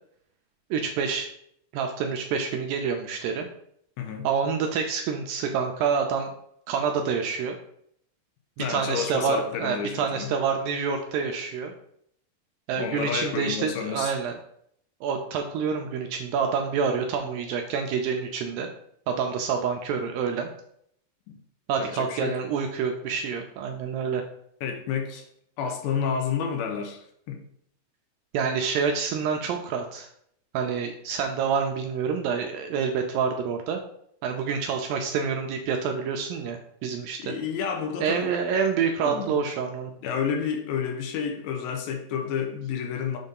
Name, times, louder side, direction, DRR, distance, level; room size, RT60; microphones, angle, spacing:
voice 1, 0.7-1.3 1.7-3.5 4.2-6.3 6.7-7.6 8.6-11.7 12.7-14.4 15.0-18.7 19.1-20.5 21.7-24.2 28.3-30.1 30.5-33.8 34.2-37.3 38.0-39.9, right 6 dB, 80° right, 4 dB, 2.1 m, -27 dB
voice 2, 8.6-10.3 12.8-14.1 21.3-21.4 21.8-22.4 24.6-25.3 25.6-27.4 37.2-38.3 39.0-39.4 40.0-43.2, left 7 dB, 80° left, 3 dB, 2.5 m, -30 dB
6.6 x 2.7 x 5.3 m, 0.69 s
omnidirectional pair, 4.4 m